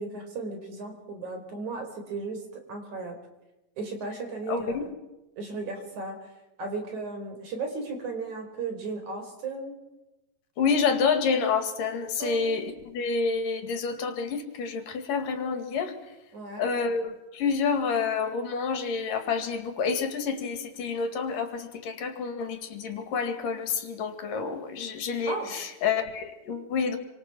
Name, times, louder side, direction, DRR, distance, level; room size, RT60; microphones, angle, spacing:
voice 1, 0.0-3.2 3.8-4.9 5.4-6.3 6.6-9.8 12.2-12.6 16.3-16.7 25.3-25.5, right 3 dB, 55° right, 5 dB, 5.5 m, -35 dB
voice 2, 4.5-4.8 10.6-15.9 16.6-27.0, left 5 dB, 70° left, 7 dB, 3.7 m, -28 dB
27.5 x 26.0 x 6.1 m, 0.99 s
omnidirectional pair, 4.0 m